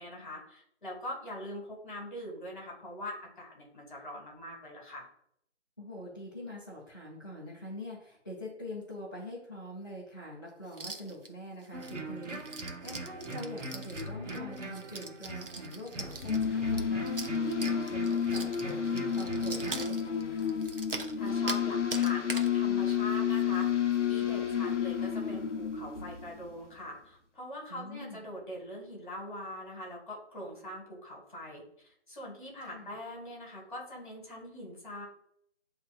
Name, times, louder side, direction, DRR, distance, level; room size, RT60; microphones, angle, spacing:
voice 1, 0.0-5.1 21.1-35.1, left 1 dB, 40° left, -1 dB, 1.7 m, -43 dB
voice 2, 5.8-18.0 18.3-20.6 27.7-28.2 32.7-32.9, left 1 dB, 15° left, -10 dB, 0.7 m, -44 dB
sound 1, 10.7-11.3 11.6-21.6 21.9-22.5 22.9-23.0 23.3-23.6 23.9-24.0 24.5-24.7, right 3 dB, 50° right, 0.5 m, -42 dB
sound 2, 11.7-19.9, right 1 dB, 75° right, 1.0 m, -41 dB
sound 3, 16.1-26.5, left 8 dB, 75° left, 0.7 m, -30 dB
7.8 x 2.7 x 2.5 m, 0.72 s
figure-of-eight pair, 160°, 37 cm